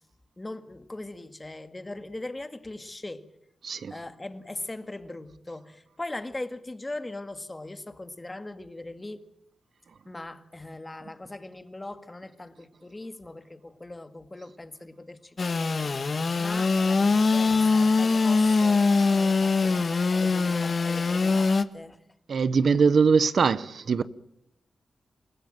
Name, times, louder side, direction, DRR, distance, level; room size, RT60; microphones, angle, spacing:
voice 1, 0.4-3.3 3.9-9.2 10.1-22.0, left 2 dB, 20° left, 2.1 m, -40 dB
Engine / Sawing, 15.4-21.6, left 4 dB, 45° left, 1.4 m, -23 dB
voice 2, 22.3-24.0, right 5 dB, 65° right, 0.9 m, -22 dB
28.5 x 16.0 x 9.0 m
wide cardioid pair, 105°, 0 cm